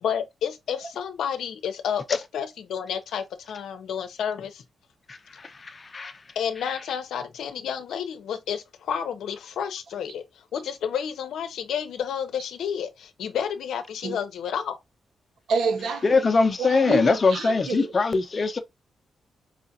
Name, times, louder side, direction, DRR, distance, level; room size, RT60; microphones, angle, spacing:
voice 1, 0.0-4.6 6.4-10.2 10.5-14.8, left 8 dB, 85° left, 0.7 m, -30 dB
voice 2, 5.1-6.1 16.0-18.6, left 4 dB, 35° left, 0.7 m, -22 dB
voice 3, 15.5-16.3 16.6-17.9, right 4 dB, 75° right, 0.6 m, -28 dB
4.8 x 2.5 x 2.6 m
cardioid pair, 105°, 0 cm